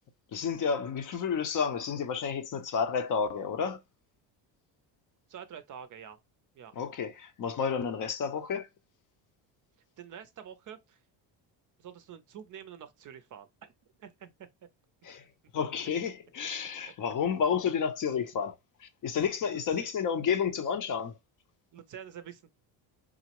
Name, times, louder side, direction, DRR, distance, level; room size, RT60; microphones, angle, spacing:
voice 1, 0.3-3.8 6.8-8.7 15.0-15.2 15.5-21.1, left 6 dB, 45° left, 0.5 m, -31 dB
voice 2, 5.3-6.2 6.6-6.7 10.0-11.0 11.8-13.7 14.0-14.3 19.8-19.9 21.7-22.5, right 8 dB, 45° right, 0.5 m, -47 dB
3.6 x 2.0 x 2.9 m
cardioid pair, 90°, 47 cm